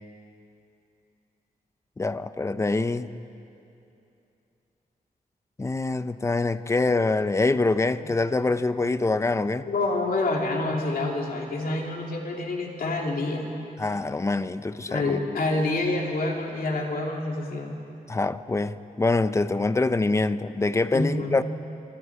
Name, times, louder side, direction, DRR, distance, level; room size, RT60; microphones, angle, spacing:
voice 1, 2.0-3.1 5.6-9.7 13.8-15.2 18.1-21.4, left 3 dB, 20° left, 12 dB, 0.5 m, -25 dB
voice 2, 9.7-13.5 14.9-17.8 20.9-21.3, left 2 dB, 70° left, 0 dB, 2.9 m, -27 dB
26.5 x 24.0 x 4.9 m, 2.8 s
wide cardioid pair, 165°, 15 cm